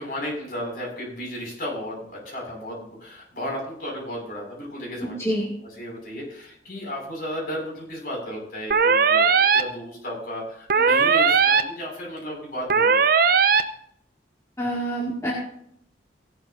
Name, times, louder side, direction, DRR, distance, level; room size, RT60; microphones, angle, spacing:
voice 1, 0.0-5.4 5.8-9.3 9.5-13.3, equal, 50° left, -2 dB, 5.8 m, -34 dB
voice 2, 5.0-5.5 14.6-15.3, right 1 dB, 15° left, -4 dB, 2.0 m, -27 dB
sound 1, 8.7-9.6 10.7-11.6 12.7-13.6, right 5 dB, 55° right, 0.6 m, -18 dB
16.5 x 11.5 x 2.6 m, 0.71 s
head